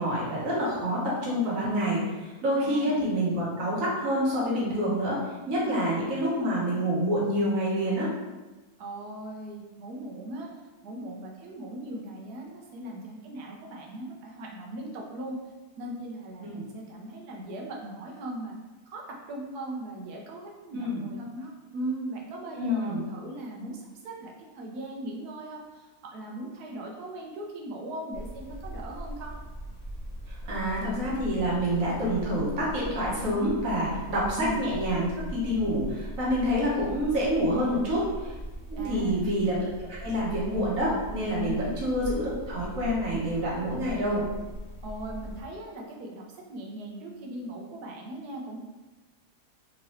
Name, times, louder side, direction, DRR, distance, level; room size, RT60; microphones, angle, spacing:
voice 1, 0.0-5.2 5.5-8.1 16.4-16.6 20.7-21.0 22.5-23.0 30.3-38.0 38.7-39.7 40.0-44.3, equal, 60° right, -6 dB, 1.5 m, -27 dB
voice 2, 2.6-3.0 5.7-5.9 8.8-10.5 10.8-15.4 15.8-18.5 18.9-29.4 34.4-34.6 37.6-37.9 38.8-39.2 41.4-41.6 44.8-48.6, right 1 dB, 80° right, -1 dB, 1.3 m, -38 dB
sound 1, 28.1-45.4, right 1 dB, 40° left, 0.5 m, -40 dB
3.6 x 2.9 x 3.0 m, 1.2 s
omnidirectional pair, 1.7 m